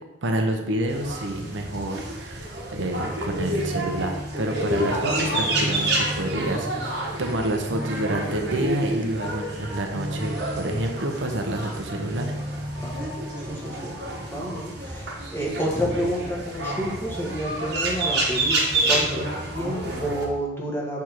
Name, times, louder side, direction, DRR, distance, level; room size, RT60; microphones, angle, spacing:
voice 1, 0.2-12.3, right 1 dB, 80° right, 3 dB, 0.8 m, -28 dB
sound 1, 0.9-20.2, right 1 dB, 60° right, 1.2 m, -29 dB
voice 2, 6.5-7.0 12.8-13.9 14.3-21.0, equal, 10° left, -4 dB, 1.3 m, -30 dB
6.4 x 3.5 x 4.5 m, 0.98 s
head